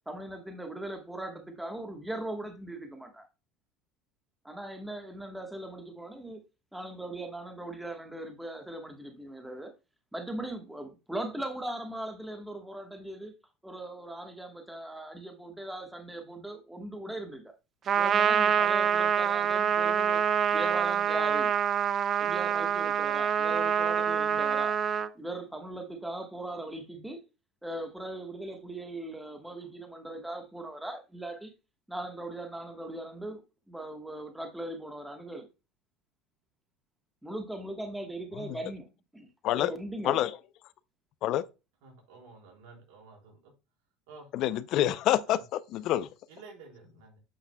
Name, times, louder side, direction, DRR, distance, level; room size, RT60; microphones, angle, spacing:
voice 1, 0.1-3.3 4.4-6.4 6.7-9.7 10.1-13.3 13.6-17.4 17.9-20.2 20.5-21.5 22.2-24.7 25.1-27.2 27.6-31.5 31.9-33.4 33.7-35.4 37.2-40.2, right 1 dB, 5° right, 1.2 m, -39 dB
Trumpet, 17.9-25.1, right 8 dB, 35° right, 0.5 m, -26 dB
voice 2, 41.8-43.5 44.1-44.3 45.3-45.4 46.3-47.2, right 4 dB, 75° right, 4.0 m, -51 dB
voice 3, 44.3-45.4 45.7-46.1, left 13 dB, 55° left, 0.4 m, -26 dB
8.5 x 5.7 x 2.2 m
supercardioid pair, 115°, 0 cm